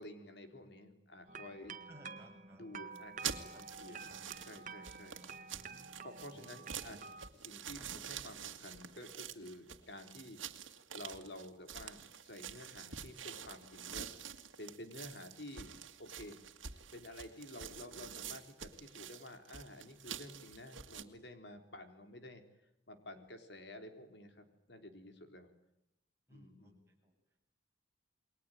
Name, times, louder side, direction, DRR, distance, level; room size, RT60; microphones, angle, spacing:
voice 1, 0.0-1.8 2.5-4.1 4.4-5.2 6.0-7.1 7.4-10.4 10.9-14.1 14.6-16.4 16.9-22.4 22.9-25.5 26.3-26.8, left 1 dB, 60° left, 7 dB, 3.7 m, -51 dB
sound 1, 1.3-7.3, right 5 dB, 40° right, 1.8 m, -50 dB
voice 2, 1.9-2.6 3.3-3.6 3.9-4.3 5.5-5.8 6.3-6.5 6.8-7.0 7.8-7.9 26.3-26.7 27.0-27.1, equal, 15° right, -1 dB, 7.6 m, -60 dB
sound 2, 3.0-21.0, right 8 dB, 90° right, 2.1 m, -47 dB
29.0 x 22.0 x 9.2 m, 0.86 s
head